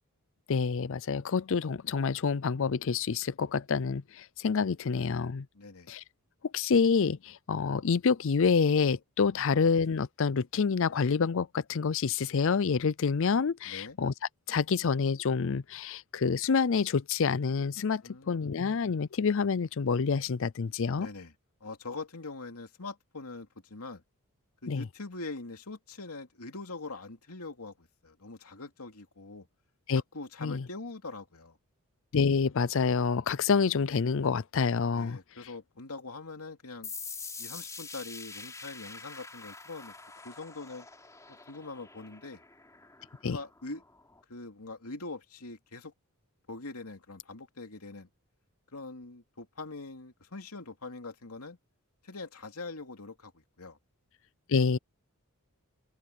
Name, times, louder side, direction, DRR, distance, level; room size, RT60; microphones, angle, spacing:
voice 1, 0.5-5.5 5.9-6.0 6.5-14.1 14.5-21.1 24.7-24.9 29.9-30.0 30.4-30.6 32.1-35.2 43.2-43.4 54.5-54.8, left 5 dB, 60° left, 0.5 m, -27 dB
voice 2, 5.5-5.9 13.7-14.0 18.0-18.5 21.0-21.3 21.6-24.0 24.6-29.5 29.9-31.6 34.9-36.9 37.4-39.9 40.2-40.9 41.3-42.4 43.2-43.8 44.3-45.9 46.5-48.1 48.7-51.6 52.0-53.8, left 3 dB, 85° left, 2.7 m, -43 dB
sound 1, 36.8-44.2, left 4 dB, 15° left, 3.9 m, -45 dB
open air
head